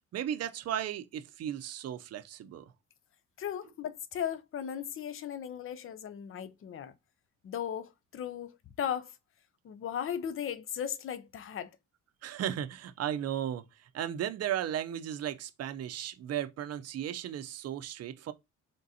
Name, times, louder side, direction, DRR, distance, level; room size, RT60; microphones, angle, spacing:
voice 1, 0.1-2.7 12.2-18.3, right 10 dB, 55° right, 0.6 m, -35 dB
voice 2, 3.4-6.9 7.4-9.1 9.6-11.7, left 9 dB, 45° left, 0.6 m, -37 dB
3.9 x 3.6 x 2.7 m
cardioid pair, 90°, 30 cm